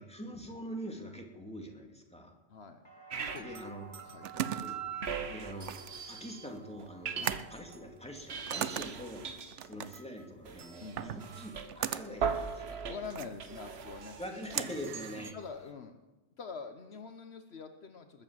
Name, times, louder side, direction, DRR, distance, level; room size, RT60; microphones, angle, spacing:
voice 1, 0.0-2.3 3.3-4.1 4.5-4.8 5.2-12.8 14.2-15.4, equal, 5° left, 1 dB, 2.4 m, -44 dB
voice 2, 2.5-2.8 3.3-3.5 4.0-4.7 7.2-7.5 10.8-11.0 12.9-14.2 15.1-16.0 16.4-18.2, left 5 dB, 65° left, 7 dB, 1.2 m, -45 dB
sound 1, 2.8-10.8 11.1-11.8, right 6 dB, 40° left, 2.9 m, -56 dB
sound 2, 3.1-3.6 3.9-6.5 6.8-7.8 8.1-15.3, right 6 dB, 65° right, 1.3 m, -40 dB
sound 3, 3.8-15.7, right 9 dB, 80° right, 1.0 m, -40 dB
20.5 x 8.8 x 7.4 m, 1.1 s
omnidirectional pair, 1.2 m